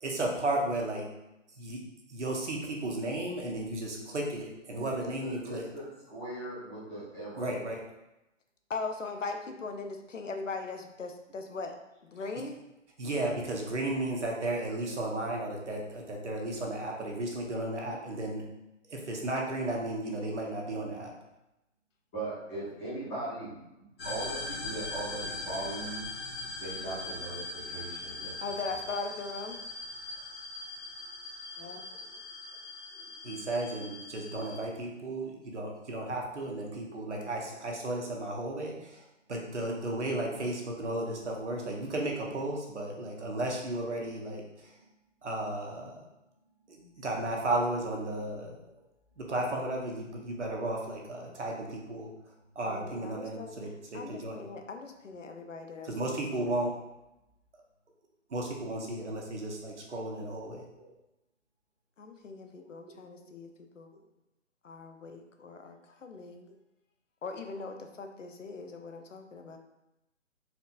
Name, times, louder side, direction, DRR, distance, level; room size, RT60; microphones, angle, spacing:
voice 1, 0.0-1.1 1.6-1.8 2.1-5.6 7.4-7.8 13.0-18.4 18.9-21.1 33.2-39.0 39.3-44.4 45.2-46.0 46.7-48.6 49.2-52.1 52.6-54.4 55.9-56.7 58.3-60.6, right 2 dB, 65° right, 0 dB, 0.9 m, -34 dB
voice 2, 4.7-7.8 22.1-23.6 24.0-26.0 26.4-28.3 31.9-32.0 48.6-48.8 60.7-60.9 62.8-63.2, right 2 dB, 10° left, -12 dB, 0.8 m, -40 dB
voice 3, 8.7-11.8 12.0-12.6 26.8-27.1 28.4-29.6 31.6-31.8 52.6-56.7 62.0-63.9 64.6-66.5 67.2-69.6, left 4 dB, 75° left, 5 dB, 0.6 m, -40 dB
sound 1, 24.0-34.6, left 2 dB, 50° left, 1.3 m, -41 dB
4.3 x 2.6 x 2.4 m, 0.91 s
figure-of-eight pair, 140°, 38 cm